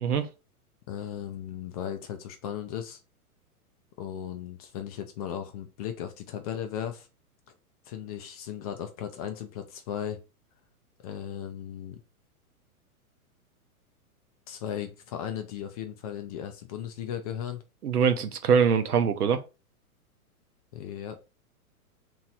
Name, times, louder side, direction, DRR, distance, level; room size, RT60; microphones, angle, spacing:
voice 1, 0.9-3.0 4.0-7.1 7.9-10.2 11.0-12.0 14.5-17.6 20.7-21.2, left 9 dB, 30° left, 0.4 m, -36 dB
voice 2, 17.8-19.4, right 6 dB, 85° right, 0.8 m, -23 dB
3.0 x 2.9 x 3.9 m
hypercardioid pair, 120°, 45 cm